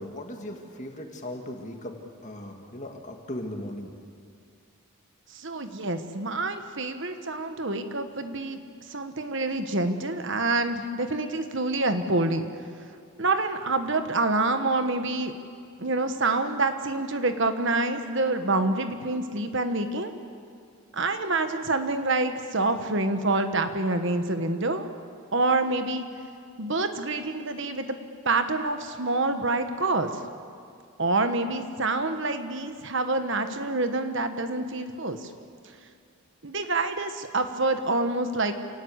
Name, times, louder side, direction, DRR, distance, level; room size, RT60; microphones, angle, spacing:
voice 1, 0.0-2.0 2.2-3.9, left 1 dB, 35° left, 3 dB, 2.3 m, -37 dB
voice 2, 5.3-8.6 8.9-12.5 13.2-15.3 15.8-20.1 20.9-24.9 25.3-26.1 26.6-28.0 28.2-30.2 31.0-35.3 36.4-38.5, right 2 dB, 55° right, 8 dB, 1.4 m, -27 dB
27.5 x 18.5 x 8.2 m, 2.3 s
head